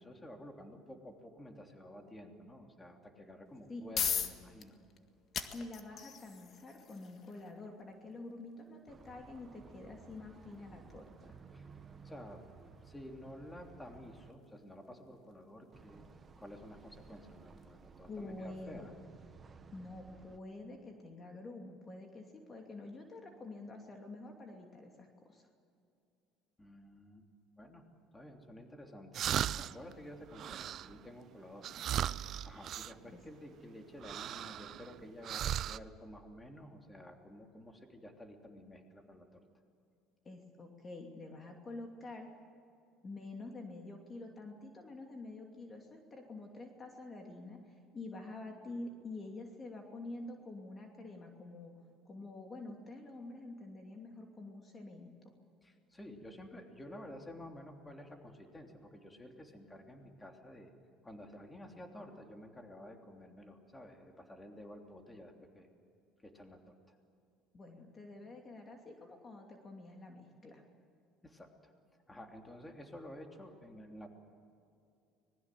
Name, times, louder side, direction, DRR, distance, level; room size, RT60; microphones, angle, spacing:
voice 1, 0.0-4.8 11.5-11.7 12.0-12.4 12.8-16.0 16.3-18.9 26.6-27.2 27.6-27.8 28.1-31.9 32.2-39.4 55.6-60.7 61.0-65.7 66.2-66.7 71.2-71.7 72.1-74.1, left 1 dB, 15° left, 3 dB, 3.1 m, -51 dB
sound 1, 3.5-18.3, left 7 dB, 50° left, 1.8 m, -44 dB
voice 2, 5.5-11.4 18.1-18.9 19.7-25.5 33.1-33.2 40.2-42.3 43.0-51.7 52.0-55.3 67.5-70.6, left 2 dB, 30° left, 2 dB, 2.8 m, -48 dB
sound 2, 8.9-14.3 15.7-20.4, right 5 dB, 30° right, 1.4 m, -56 dB
sound 3, 29.1-29.9 30.3-31.0 31.6-32.9 34.0-35.0 35.2-35.8, right 11 dB, 50° right, 0.5 m, -37 dB
25.0 x 20.5 x 7.6 m, 2.5 s
supercardioid pair, 100°, 0 cm